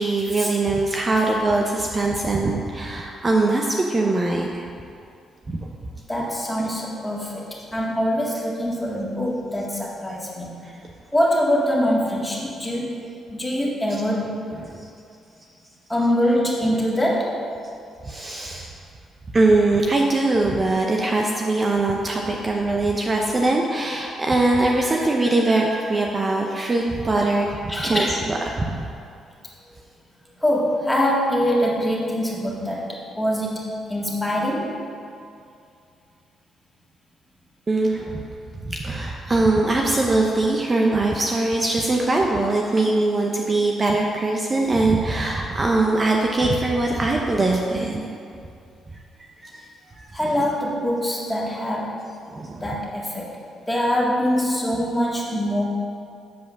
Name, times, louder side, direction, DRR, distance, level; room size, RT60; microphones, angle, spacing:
voice 1, 0.0-4.6 5.5-5.6 6.6-6.7 14.7-14.9 18.0-18.7 19.3-27.5 27.8-28.9 37.7-38.2 38.6-48.1 49.4-49.6 50.0-50.3 52.3-52.6 54.7-54.8, right 2 dB, 30° right, 0 dB, 0.7 m, -22 dB
voice 2, 6.1-10.7 11.1-13.0 13.3-14.4 15.9-17.5 27.7-28.2 30.4-34.8 50.1-52.0 52.6-53.4 53.7-55.6, equal, 10° left, -4 dB, 1.9 m, -24 dB
8.3 x 5.0 x 6.2 m, 2.4 s
cardioid pair, 90°, 0 cm